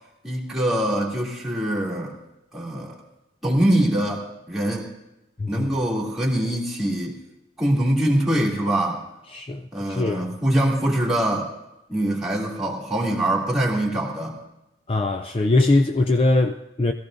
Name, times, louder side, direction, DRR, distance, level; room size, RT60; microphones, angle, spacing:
voice 1, 0.2-2.1 2.5-3.0 3.4-4.9 5.5-7.1 7.6-9.0 9.7-11.5 11.9-14.4, right 1 dB, ahead, 2.6 m, -23 dB
voice 2, 9.3-10.4 14.9-16.9, left 2 dB, 30° left, 0.4 m, -21 dB
21.5 x 15.0 x 2.6 m
head